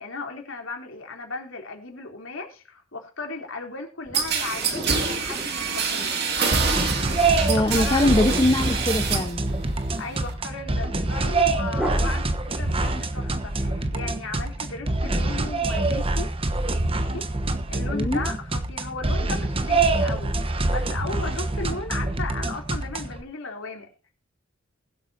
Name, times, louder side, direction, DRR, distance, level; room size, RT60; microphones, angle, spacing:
voice 1, 0.0-6.2 7.6-8.1 10.0-16.3 16.9-17.3 17.7-23.9, left 3 dB, 75° left, 3 dB, 3.4 m, -36 dB
sound 1, 4.0-6.1 8.0-9.4 11.7-12.8, right 1 dB, 5° right, 3.6 m, -35 dB
sound 2, 4.1-9.4 9.7-10.3, right 5 dB, 50° right, 2.1 m, -26 dB
sound 3, 6.5-23.2, right 2 dB, 25° right, 1.0 m, -25 dB
voice 2, 7.5-9.4 17.9-18.2, left 1 dB, 20° left, 5 dB, 0.9 m, -22 dB
21.0 x 8.1 x 2.7 m, 0.35 s
head